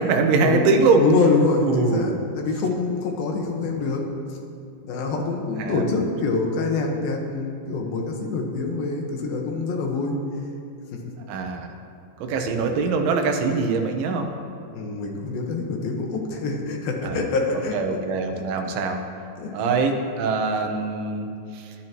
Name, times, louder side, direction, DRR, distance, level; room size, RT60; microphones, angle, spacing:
voice 1, 0.0-1.0 1.6-2.1 3.6-3.7 5.6-6.1 11.3-11.7 12.2-14.3 17.0-17.2 17.7-19.0 19.5-21.7, right 4 dB, 80° right, 3 dB, 3.5 m, -23 dB
voice 2, 1.0-4.0 4.8-10.1 14.7-17.8 19.4-19.8, left 3 dB, 65° left, 1 dB, 2.6 m, -25 dB
20.5 x 11.5 x 3.0 m, 2.5 s
omnidirectional pair, 5.4 m